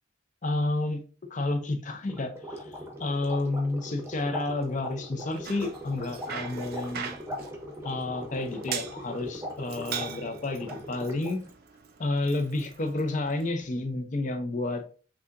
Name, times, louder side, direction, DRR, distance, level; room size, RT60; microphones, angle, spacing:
voice 1, 0.4-1.0 1.3-7.2 7.8-11.4 12.0-14.8, left 2 dB, 35° left, 6 dB, 0.6 m, -30 dB
sound 1, 2.1-11.5, equal, 15° right, 0.8 m, -40 dB
Bicycle, 5.2-13.5, right 7 dB, 50° right, 0.5 m, -42 dB
5.9 x 2.8 x 2.5 m, 0.38 s
head